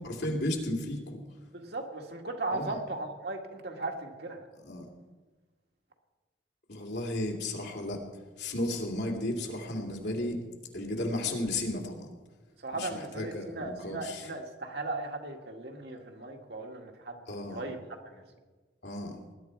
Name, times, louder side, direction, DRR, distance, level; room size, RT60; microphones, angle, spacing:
voice 1, 0.0-1.2 2.5-2.8 4.6-4.9 6.7-8.0 8.4-10.4 10.7-12.1 12.7-14.2 17.3-17.6 18.8-19.2, left 1 dB, 75° left, 1 dB, 2.7 m, -34 dB
voice 2, 1.5-4.5 12.6-17.8 18.1-18.2, right 2 dB, 65° right, 2 dB, 1.9 m, -37 dB
20.0 x 11.0 x 4.7 m, 1.3 s
head